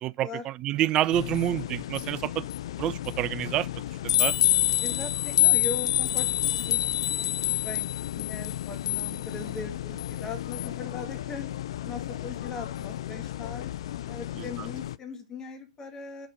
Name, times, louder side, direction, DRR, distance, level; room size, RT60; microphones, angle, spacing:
voice 1, 0.0-2.4 2.8-3.7 4.0-4.3 14.4-14.5, right 13 dB, 25° right, 0.4 m, -28 dB
sound 1, 1.1-14.9, left 14 dB, 50° left, 0.4 m, -29 dB
voice 2, 4.8-11.5 11.8-13.7 14.1-16.3, left 4 dB, 15° left, 1.8 m, -40 dB
6.4 x 5.9 x 6.3 m
figure-of-eight pair, 115°, 4 cm